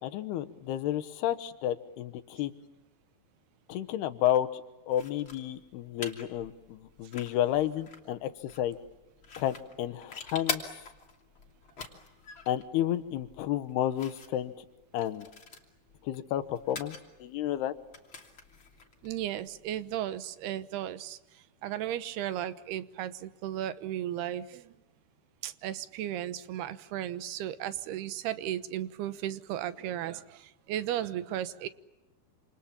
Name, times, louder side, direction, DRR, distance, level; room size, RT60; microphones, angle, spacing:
voice 1, 0.0-2.5 3.7-4.6 4.9-8.3 8.6-8.8 9.4-10.6 12.5-14.7 14.9-15.3 16.0-17.7, left 12 dB, 85° left, 9 dB, 3.2 m, -31 dB
sound 1, 4.9-20.0, left 4 dB, 35° left, 3.2 m, -45 dB
voice 2, 19.0-21.2 21.6-24.6 25.4-30.4 30.7-31.7, right 12 dB, 80° right, 13 dB, 3.0 m, -35 dB
28.0 x 27.5 x 7.2 m, 1.1 s
omnidirectional pair, 4.6 m